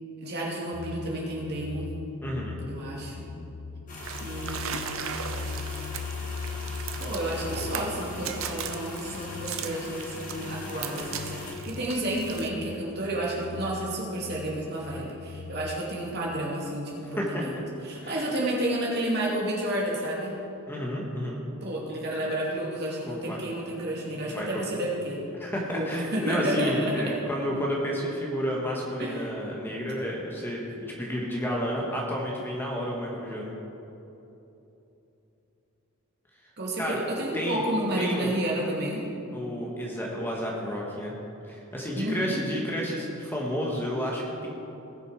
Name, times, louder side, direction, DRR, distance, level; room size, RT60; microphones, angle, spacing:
voice 1, 0.2-1.9 2.7-3.3 4.2-5.1 7.0-17.6 17.8-20.3 21.6-25.2 25.7-27.0 29.0-29.2 36.6-39.0 41.9-42.4, right 1 dB, 50° right, -4 dB, 2.7 m, -31 dB
sound 1, 0.7-15.8, left 4 dB, 75° left, 0.5 m, -40 dB
voice 2, 2.2-2.6 17.0-17.4 18.0-18.3 20.7-21.4 23.1-23.4 24.2-24.6 25.4-33.5 36.8-37.0 37.3-37.6 37.9-38.4 39.3-41.1 41.5-44.6, equal, 10° left, -3 dB, 1.5 m, -31 dB
sound 2, 3.9-11.5, left 3 dB, 40° left, 1.9 m, -41 dB
sound 3, 4.0-12.5, right 8 dB, 65° right, 0.7 m, -39 dB
19.0 x 6.5 x 5.0 m, 3.0 s
head